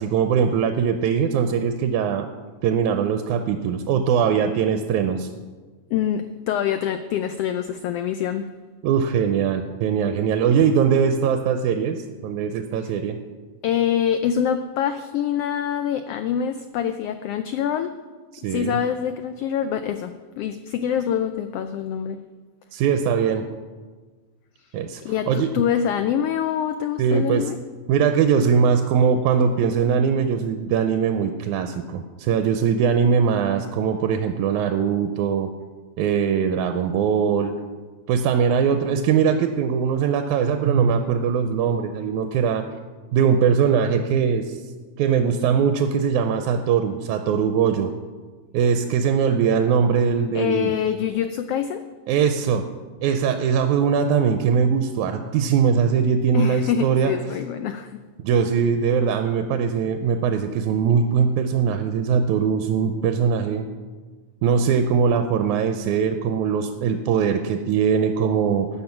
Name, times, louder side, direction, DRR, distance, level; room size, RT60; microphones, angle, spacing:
voice 1, 0.0-2.3 2.6-5.3 8.8-13.2 18.4-18.8 22.7-23.4 24.7-25.0 25.3-25.5 27.0-27.5 27.9-35.5 36.0-37.5 38.1-42.6 43.1-44.6 45.0-47.9 48.5-50.7 52.1-52.7 53.0-57.1 58.2-63.7 64.4-68.7, right 7 dB, 90° right, 7 dB, 2.1 m, -21 dB
voice 2, 5.9-8.5 12.8-12.9 13.6-17.9 18.4-22.2 25.0-27.6 50.3-51.8 56.3-58.0, left 9 dB, 85° left, 9 dB, 1.3 m, -25 dB
14.0 x 9.1 x 5.9 m, 1.4 s
omnidirectional pair, 3.4 m